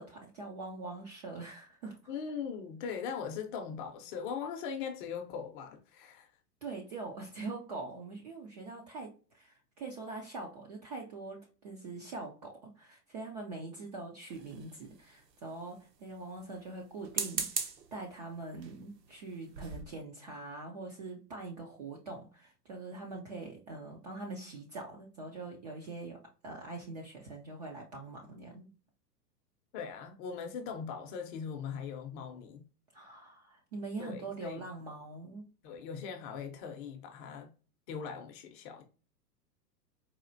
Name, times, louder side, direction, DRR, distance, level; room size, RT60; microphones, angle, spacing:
voice 1, 0.0-2.0 6.6-28.7 32.9-35.5, right 3 dB, 30° right, 0.3 m, -43 dB
voice 2, 2.1-6.3 29.7-32.6 34.0-34.7 35.6-37.5 37.9-38.8, left 6 dB, 30° left, 0.6 m, -40 dB
sound 1, 14.3-15.1 17.0-17.9 18.6-18.8 19.2-19.3 19.5-19.8, right 6 dB, 75° right, 1.0 m, -37 dB
4.2 x 2.3 x 2.5 m
hypercardioid pair, 120°, 49 cm